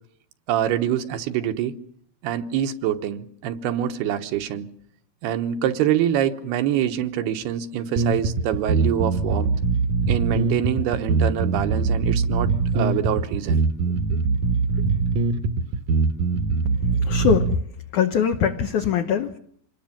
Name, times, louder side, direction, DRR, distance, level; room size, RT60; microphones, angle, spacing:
voice 1, 0.5-1.7 2.2-4.7 5.2-9.5 10.1-13.6 14.1-14.2, right 10 dB, 80° right, 3.2 m, -25 dB
sound 1, 8.0-17.6, right 4 dB, 65° right, 2.1 m, -22 dB
voice 2, 17.1-17.5 17.9-19.4, left 7 dB, 65° left, 2.1 m, -22 dB
26.5 x 20.5 x 7.4 m
omnidirectional pair, 4.6 m